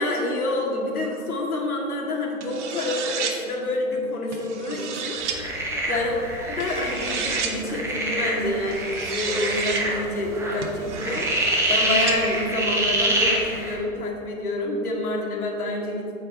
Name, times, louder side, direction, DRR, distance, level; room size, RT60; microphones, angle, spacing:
voice 1, 0.0-5.2 5.9-6.1 6.5-11.3 11.7-16.1, left 2 dB, 80° left, 0 dB, 2.0 m, -27 dB
sound 1, 2.4-3.4 4.3-5.4 6.6-7.6 8.7-9.8 10.6-12.2, right 6 dB, 55° right, 1.1 m, -32 dB
sound 2, 5.3-13.7, right 1 dB, 5° right, 0.9 m, -26 dB
9.1 x 7.8 x 3.9 m, 2.9 s
hypercardioid pair, 135°, 44 cm